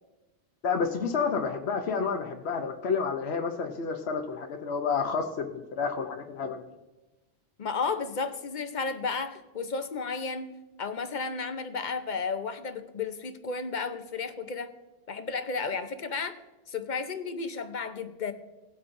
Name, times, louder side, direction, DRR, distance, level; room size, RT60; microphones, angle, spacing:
voice 1, 0.6-6.6, left 5 dB, 80° left, 3 dB, 1.1 m, -30 dB
voice 2, 7.6-10.5 10.8-14.7 15.1-16.3 16.7-18.3, left 4 dB, 50° left, 9 dB, 0.9 m, -33 dB
19.0 x 8.3 x 2.6 m, 1.1 s
omnidirectional pair, 1.1 m